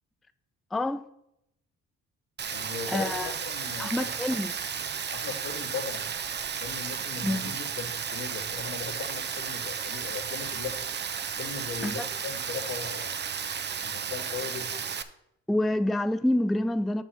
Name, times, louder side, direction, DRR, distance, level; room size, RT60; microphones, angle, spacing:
voice 1, 0.7-1.0 2.9-3.3 3.8-4.6 7.2-7.6 11.8-12.1 15.5-17.0, left 1 dB, ahead, 0.3 m, -27 dB
Rain, 2.4-15.0, right 7 dB, 35° right, 0.7 m, -33 dB
voice 2, 2.5-4.1 5.1-6.1 6.6-10.8 11.4-13.2 13.8-14.8, left 5 dB, 80° left, 2.4 m, -38 dB
7.0 x 6.1 x 5.9 m
cardioid pair, 90°, 30 cm